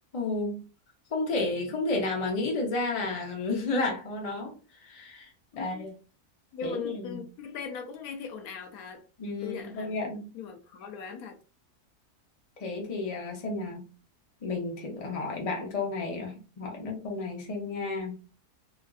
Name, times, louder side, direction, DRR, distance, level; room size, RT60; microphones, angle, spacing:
voice 1, 0.1-0.6 1.1-5.9 6.6-7.2 9.2-10.3 12.6-13.8 14.4-18.2, left 3 dB, 40° left, 0.5 m, -32 dB
voice 2, 5.5-5.9 6.5-9.0 9.4-9.9 10.3-11.4, left 6 dB, 75° left, 1.0 m, -39 dB
3.3 x 2.4 x 2.3 m
omnidirectional pair, 1.6 m